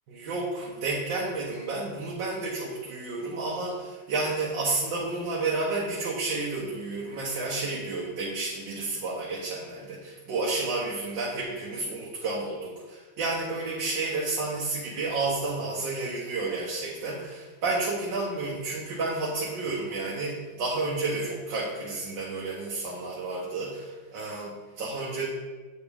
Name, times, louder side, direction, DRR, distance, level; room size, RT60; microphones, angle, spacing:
voice 1, 0.1-25.3, right 3 dB, 75° right, -4 dB, 1.7 m, -31 dB
8.3 x 4.9 x 3.5 m, 1.3 s
omnidirectional pair, 2.0 m